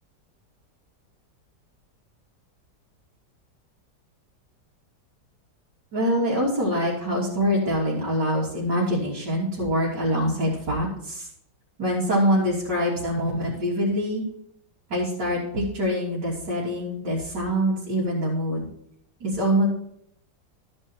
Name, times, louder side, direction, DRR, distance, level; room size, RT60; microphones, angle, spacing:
voice 1, 5.9-11.3 11.8-14.2 14.9-18.7 19.2-19.7, equal, 85° right, -9 dB, 3.7 m, -24 dB
14.0 x 5.5 x 4.5 m, 0.74 s
omnidirectional pair, 1.8 m